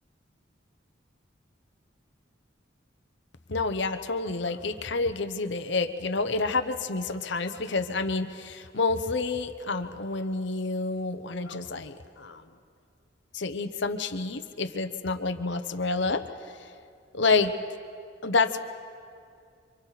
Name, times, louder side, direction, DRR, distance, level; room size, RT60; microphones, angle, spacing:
voice 1, 3.5-12.4 13.3-16.2 17.1-17.5 18.2-18.6, left 3 dB, 65° left, 10 dB, 1.0 m, -28 dB
28.0 x 25.0 x 4.1 m, 2.3 s
head